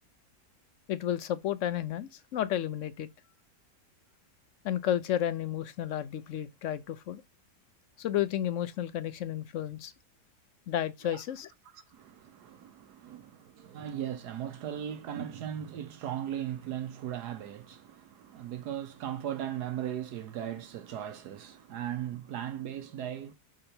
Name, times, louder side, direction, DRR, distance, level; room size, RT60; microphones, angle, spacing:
voice 1, 0.9-3.1 4.6-7.2 8.0-9.9 10.7-11.5, left 11 dB, 65° left, 0.8 m, -32 dB
voice 2, 11.7-23.3, right 10 dB, 75° right, 1.3 m, -38 dB
6.5 x 3.9 x 4.3 m
omnidirectional pair, 1.7 m